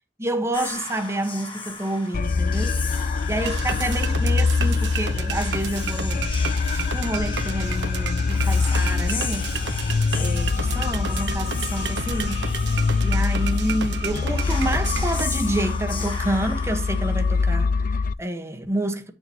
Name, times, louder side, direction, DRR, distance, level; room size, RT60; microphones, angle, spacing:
voice 1, 0.2-6.2 6.6-9.5 10.2-12.4 13.0-19.1, right 1 dB, 15° right, 1.2 m, -29 dB
Whispering, 0.5-17.7, left 4 dB, 30° left, 1.6 m, -37 dB
sound 1, 2.1-18.1, left 4 dB, 45° left, 0.4 m, -24 dB
sound 2, 3.4-15.2, right 4 dB, 75° right, 1.2 m, -32 dB
8.6 x 7.0 x 2.9 m
head